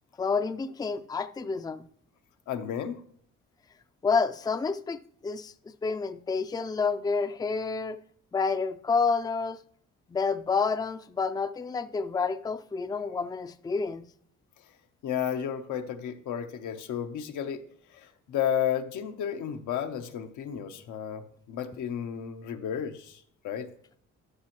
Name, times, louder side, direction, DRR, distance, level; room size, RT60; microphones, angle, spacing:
voice 1, 0.2-1.9 4.0-5.5 5.8-8.0 8.3-9.6 10.1-14.0, left 4 dB, 15° left, 0.4 m, -29 dB
voice 2, 2.5-3.0 15.0-17.6 17.9-23.7, left 9 dB, 80° left, 0.9 m, -32 dB
13.0 x 5.7 x 3.0 m
cardioid pair, 90°, 30 cm